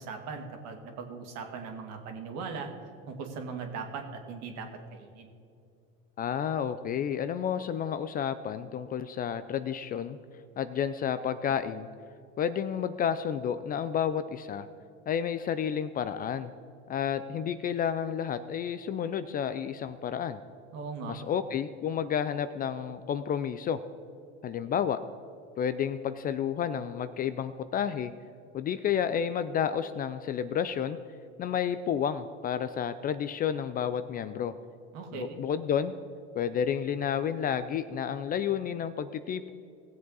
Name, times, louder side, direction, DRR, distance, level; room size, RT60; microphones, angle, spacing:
voice 1, 0.0-2.7 3.1-5.3 20.7-21.2 34.9-35.4, right 5 dB, 55° right, 4 dB, 2.1 m, -39 dB
voice 2, 6.2-10.2 10.6-11.9 12.4-14.7 15.1-16.5 16.9-20.4 21.1-23.8 24.4-25.0 25.6-28.1 28.5-31.0 31.4-34.5 35.1-35.9 36.3-39.5, left 8 dB, 30° left, 12 dB, 0.4 m, -31 dB
17.5 x 7.6 x 4.0 m, 2.4 s
supercardioid pair, 110°, 31 cm